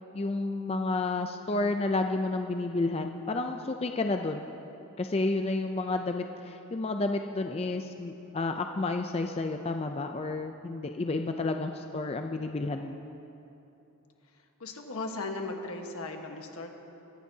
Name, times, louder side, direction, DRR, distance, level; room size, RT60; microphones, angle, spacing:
voice 1, 0.1-4.5 5.0-13.0, left 2 dB, 25° left, 5 dB, 0.4 m, -31 dB
voice 2, 14.6-16.7, left 3 dB, 80° left, 3 dB, 1.3 m, -37 dB
22.5 x 14.5 x 2.8 m, 2.9 s
head